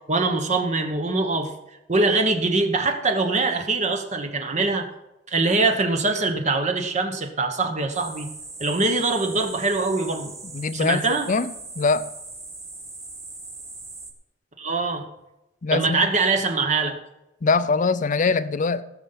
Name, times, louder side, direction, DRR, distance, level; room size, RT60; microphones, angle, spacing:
voice 1, 0.1-1.5 1.9-4.9 5.3-8.3 8.6-10.3 10.7-11.3 14.6-15.0 15.7-17.0, right 3 dB, 40° right, 5 dB, 1.1 m, -23 dB
sound 1, 7.9-14.1, right 3 dB, 15° right, 1.6 m, -40 dB
voice 2, 10.5-12.1 15.6-16.1 17.4-18.8, left 4 dB, 45° left, 15 dB, 0.5 m, -23 dB
17.0 x 6.7 x 5.7 m, 0.93 s
head